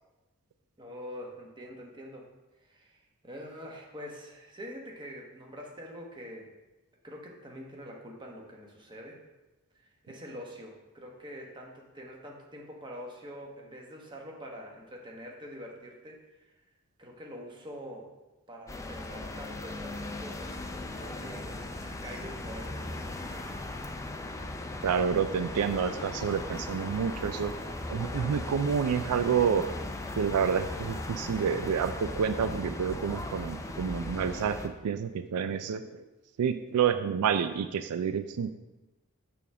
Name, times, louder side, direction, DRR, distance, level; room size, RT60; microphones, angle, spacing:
voice 1, 0.8-2.3 2.6-6.5 7.0-9.2 10.0-16.2 17.0-18.1 18.5-21.6 22.0-23.5, equal, 20° right, -1 dB, 1.1 m, -45 dB
sound 1, 18.7-34.7, left 2 dB, 15° left, 0.4 m, -38 dB
voice 2, 24.8-27.5 27.9-29.6 30.2-36.0 36.4-38.5, right 7 dB, 85° right, 10 dB, 0.4 m, -29 dB
6.9 x 3.5 x 6.1 m, 1.1 s
head